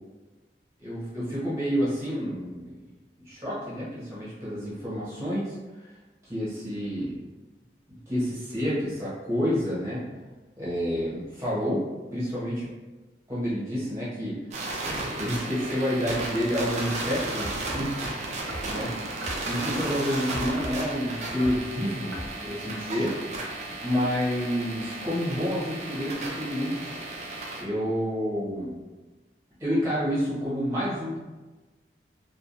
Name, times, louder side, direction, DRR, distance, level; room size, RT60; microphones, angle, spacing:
voice 1, 0.8-2.8 3.2-5.6 6.3-7.2 8.1-10.1 10.6-11.8 12.1-12.7 13.3-14.4 14.8-18.9 19.5-23.1 23.6-26.9 27.6-28.7 29.6-31.2, equal, 15° right, -10 dB, 1.0 m, -29 dB
sound 1, 14.5-27.6, right 2 dB, 40° right, 0.4 m, -34 dB
sound 2, 17.4-17.9 18.5-19.8 20.3-20.8 21.3-21.6 22.1-22.3 23.0-23.1, right 1 dB, 85° right, 0.6 m, -38 dB
3.0 x 2.3 x 2.5 m, 1.2 s
head